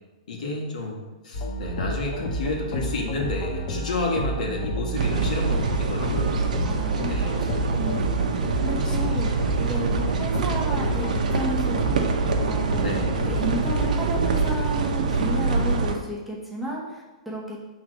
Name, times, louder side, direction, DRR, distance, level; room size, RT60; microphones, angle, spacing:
voice 1, 0.3-6.5 7.0-7.5 8.7-9.7 12.8-13.1, left 3 dB, 75° left, -1 dB, 1.6 m, -31 dB
sound 1, 1.3-14.5, right 1 dB, 35° left, 1.0 m, -30 dB
sound 2, 5.0-16.0, right 4 dB, 85° right, 0.8 m, -25 dB
voice 2, 6.6-9.3 9.7-12.1 12.5-12.9 13.2-17.6, equal, ahead, -5 dB, 0.9 m, -33 dB
6.1 x 3.7 x 5.0 m, 1.2 s
hypercardioid pair, 155°, 4 cm